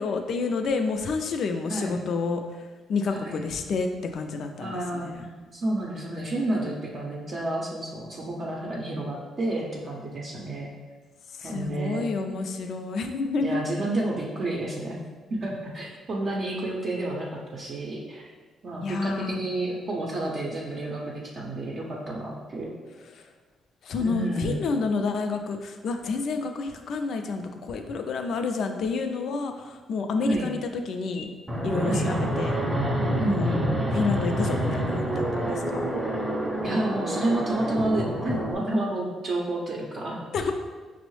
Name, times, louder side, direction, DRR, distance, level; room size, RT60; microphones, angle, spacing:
voice 1, 0.0-2.4 2.9-5.2 11.4-13.6 18.8-19.4 23.1-23.2 23.8-31.3 31.6-32.6 33.3-33.5 33.9-35.9 40.3-40.5, left 4 dB, 65° left, 6 dB, 0.4 m, -29 dB
voice 2, 3.1-3.4 4.6-10.7 11.4-12.0 13.4-15.0 15.3-18.2 18.6-22.7 24.0-24.6 30.3-30.5 31.8-32.1 33.2-33.7 36.6-40.2, right 1 dB, 50° right, -4 dB, 0.5 m, -30 dB
Fixed-wing aircraft airplane, 31.5-38.5, right 1 dB, 10° right, 0.7 m, -27 dB
5.3 x 2.0 x 3.1 m, 1.4 s
cardioid pair, 90°, 0 cm